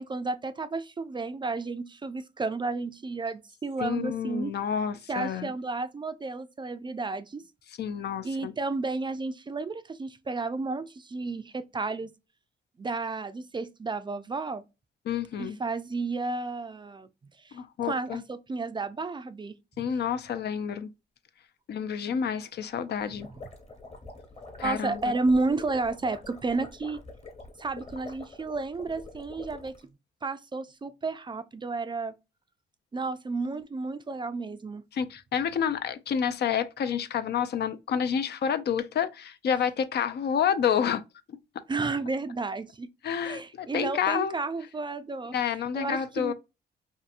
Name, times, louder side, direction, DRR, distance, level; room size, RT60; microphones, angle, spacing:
voice 1, 0.0-4.6 5.1-7.4 8.2-12.1 12.8-14.6 15.4-17.1 17.4-19.8 24.6-27.0 27.6-29.8 30.2-32.2 32.9-34.8 41.7-42.9 43.2-46.3, right 3 dB, 25° right, 0.3 m, -32 dB
voice 2, 3.8-5.5 7.8-8.5 15.1-15.6 17.5-18.2 19.8-20.9 21.7-23.3 24.6-25.0 34.9-41.0 43.0-44.4 45.3-46.3, left 8 dB, 60° left, 0.4 m, -29 dB
sound 1, 23.0-29.8, left 3 dB, 35° left, 1.2 m, -45 dB
2.7 x 2.5 x 2.4 m
cardioid pair, 75°, 19 cm